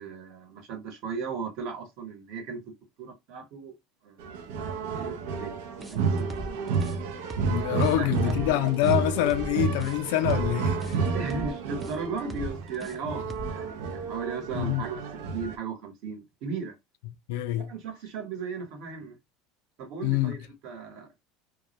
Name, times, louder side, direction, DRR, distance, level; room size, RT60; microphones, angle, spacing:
voice 1, 0.0-2.6 3.0-3.7 4.0-4.3 4.9-6.8 7.7-8.3 11.1-15.0 15.3-16.8 17.5-19.1 19.8-21.2, right 5 dB, 60° right, 1.0 m, -37 dB
sound 1, 4.2-15.6, right 5 dB, 85° right, 0.5 m, -30 dB
sound 2, 5.8-13.7, equal, 10° right, 0.3 m, -40 dB
voice 2, 7.5-11.1 14.5-14.8 17.3-17.7 20.0-20.4, left 15 dB, 80° left, 0.4 m, -26 dB
2.2 x 2.1 x 2.8 m
supercardioid pair, 150°, 0 cm